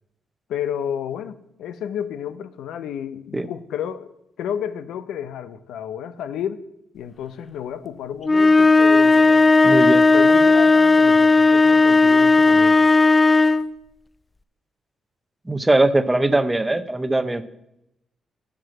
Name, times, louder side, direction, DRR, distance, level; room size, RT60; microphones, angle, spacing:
voice 1, 0.5-6.6 6.9-12.8, left 9 dB, 90° left, 0.5 m, -31 dB
sound 1, 8.2-13.7, left 3 dB, 20° left, 0.3 m, -14 dB
voice 2, 9.6-10.0 15.5-17.4, right 2 dB, 15° right, 0.7 m, -20 dB
7.7 x 6.0 x 7.6 m
cardioid pair, 85°, 0 cm